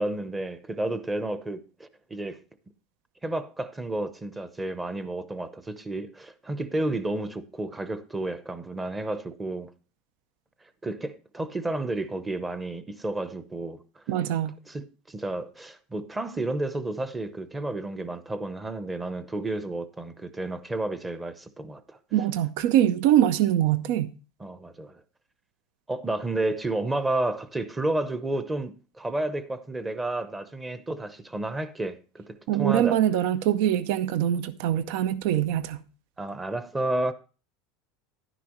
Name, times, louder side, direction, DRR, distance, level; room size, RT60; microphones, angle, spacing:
voice 1, 0.0-2.4 3.2-9.7 10.8-14.0 14.7-22.0 24.4-25.0 25.9-33.0 36.2-37.1, right 2 dB, 10° right, 0.8 m, -31 dB
voice 2, 14.1-14.6 22.1-24.1 32.5-35.8, right 11 dB, 70° right, 0.7 m, -23 dB
11.5 x 10.0 x 3.0 m
supercardioid pair, 145°, 0 cm